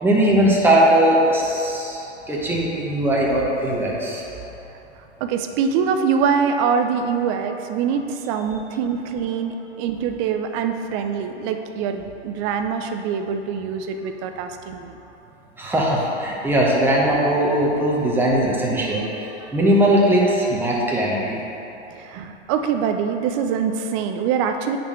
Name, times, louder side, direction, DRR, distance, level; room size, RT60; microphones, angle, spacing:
voice 1, 0.0-4.2 15.6-21.4, right 1 dB, 5° right, -4 dB, 1.0 m, -19 dB
voice 2, 5.2-15.0 21.9-24.8, right 6 dB, 30° right, 6 dB, 0.4 m, -24 dB
9.6 x 4.3 x 3.1 m, 3.0 s
hypercardioid pair, 115°, 35 cm